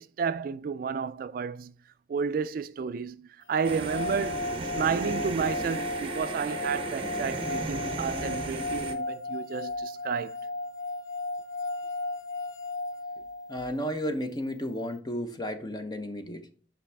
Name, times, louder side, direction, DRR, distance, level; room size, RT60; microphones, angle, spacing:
voice 1, 0.0-1.7 2.1-10.4, right 6 dB, 55° right, 0.3 m, -31 dB
sound 1, 3.6-13.7, left 2 dB, 85° left, 0.4 m, -35 dB
sound 2, 3.6-8.9, right 2 dB, 30° right, 0.7 m, -35 dB
voice 2, 13.5-16.5, equal, 25° left, 0.8 m, -33 dB
7.2 x 5.3 x 3.4 m
head